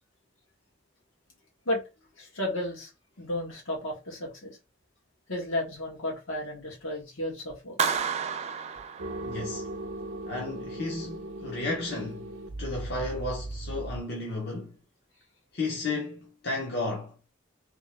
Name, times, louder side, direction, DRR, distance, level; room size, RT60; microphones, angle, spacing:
voice 1, 2.2-2.9 3.2-4.6 5.3-7.8, left 1 dB, 85° left, 1.9 m, -33 dB
Clapping, 7.8-9.7, right 6 dB, 35° right, 0.3 m, -31 dB
sound 1, 9.0-14.0, right 2 dB, 85° right, 0.6 m, -38 dB
voice 2, 9.2-9.7 10.2-12.3 12.6-14.8 15.5-17.1, left 2 dB, 55° left, 0.8 m, -33 dB
3.4 x 2.8 x 3.3 m
head